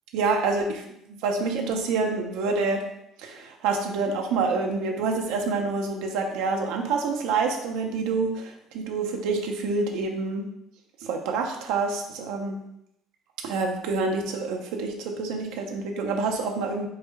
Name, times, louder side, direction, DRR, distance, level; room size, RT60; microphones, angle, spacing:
voice 1, 0.1-0.8 1.1-2.8 3.2-10.5 11.0-12.6 13.4-16.9, right 4 dB, 85° right, 2 dB, 0.6 m, -27 dB
4.7 x 2.2 x 4.7 m, 0.78 s
cardioid pair, 120°, 0 cm